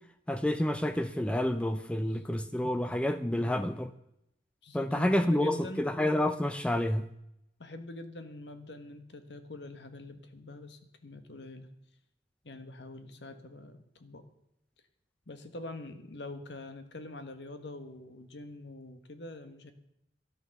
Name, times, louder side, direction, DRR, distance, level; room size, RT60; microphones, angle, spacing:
voice 1, 0.3-3.9 4.7-7.1, left 1 dB, 5° left, 0.5 m, -29 dB
voice 2, 1.9-2.4 3.2-3.6 4.6-5.8 7.6-11.7 12.4-14.3 15.3-19.7, left 2 dB, 85° left, 1.4 m, -45 dB
13.0 x 9.4 x 6.6 m
head